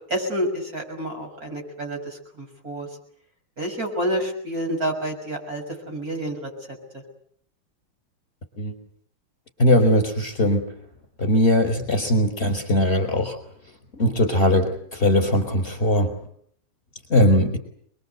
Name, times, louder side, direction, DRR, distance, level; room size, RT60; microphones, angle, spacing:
voice 1, 0.1-2.9 3.6-6.5, right 1 dB, 40° right, 3 dB, 7.0 m, -29 dB
voice 2, 9.6-10.7 11.2-13.4 14.0-16.1 17.1-17.6, left 1 dB, 30° left, 7 dB, 4.6 m, -20 dB
29.0 x 22.0 x 8.1 m, 0.66 s
omnidirectional pair, 2.3 m